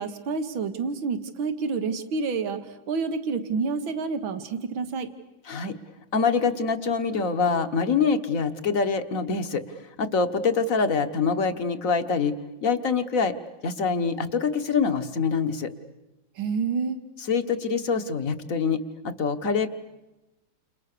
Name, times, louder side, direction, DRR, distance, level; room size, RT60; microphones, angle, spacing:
voice 1, 0.0-5.1 16.4-17.0, right 4 dB, 80° right, 9 dB, 2.3 m, -28 dB
voice 2, 6.1-12.3 12.6-13.3 13.6-15.7 17.3-19.7, left 5 dB, 45° left, 9 dB, 1.6 m, -25 dB
29.5 x 29.0 x 6.8 m, 1.0 s
omnidirectional pair, 2.1 m